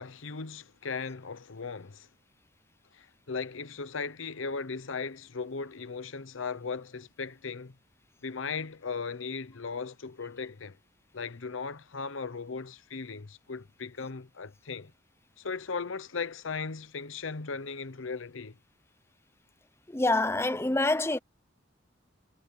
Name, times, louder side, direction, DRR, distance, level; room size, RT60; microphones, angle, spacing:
voice 1, 0.0-2.1 2.9-7.7 8.2-10.8 11.1-14.9 15.4-18.6, left 5 dB, 85° left, 0.9 m, -37 dB
voice 2, 19.9-21.2, left 2 dB, 15° left, 0.6 m, -26 dB
head